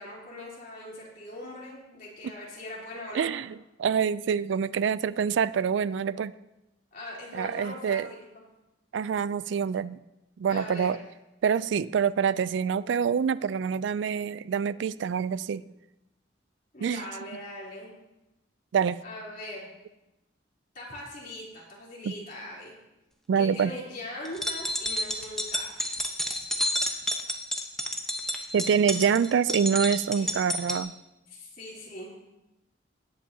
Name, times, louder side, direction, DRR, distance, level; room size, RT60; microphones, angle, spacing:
voice 1, 0.0-3.3 6.9-8.4 10.5-11.0 16.7-17.9 19.0-19.7 20.7-22.7 23.3-25.7 26.0-26.1 30.1-30.3 31.3-32.1, left 1 dB, 45° left, -4 dB, 3.4 m, -41 dB
voice 2, 3.1-3.5 3.8-6.3 7.3-8.1 8.9-10.0 10.4-11.0 11.4-15.6 16.8-17.0 18.7-19.0 22.1-22.2 23.3-23.7 28.5-30.9, right 7 dB, 80° right, 17 dB, 0.3 m, -26 dB
sound 1, 24.3-30.8, left 1 dB, 5° left, 0.8 m, -30 dB
18.0 x 8.7 x 2.8 m, 0.94 s
head